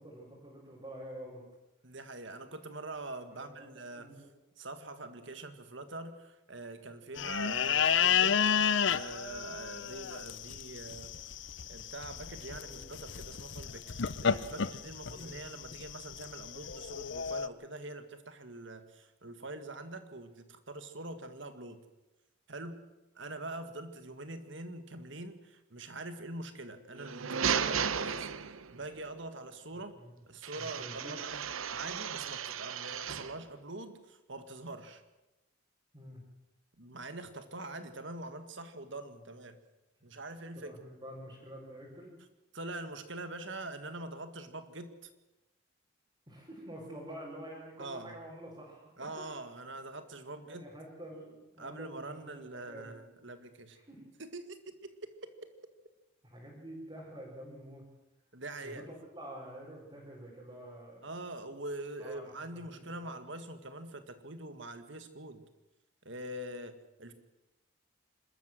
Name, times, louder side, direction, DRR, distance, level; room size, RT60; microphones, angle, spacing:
voice 1, 0.0-1.4 3.2-4.3 12.6-12.8 15.1-15.4 30.0-30.1 30.6-31.2 35.9-36.2 40.5-42.1 46.3-48.9 49.2-49.3 50.3-52.2 52.5-52.9 53.7-54.0 56.2-57.8 58.6-58.8 59.1-61.1 62.0-63.1, right 1 dB, 20° right, -6 dB, 4.9 m, -48 dB
voice 2, 1.8-4.1 4.6-8.4 8.9-11.1 11.7-21.8 22.5-22.8 23.2-28.3 28.7-30.0 30.3-35.0 36.8-39.6 40.0-40.7 42.5-45.1 47.8-48.2 49.0-50.7 51.6-53.8 54.2-55.5 58.3-58.9 61.0-65.4 66.0-67.1, right 2 dB, 60° right, 9 dB, 1.9 m, -44 dB
sound 1, 7.2-17.5, left 7 dB, 60° left, 0.7 m, -32 dB
sound 2, 26.9-28.9 30.4-33.4, right 7 dB, 80° right, 0.9 m, -35 dB
26.5 x 13.5 x 7.7 m, 1.0 s
head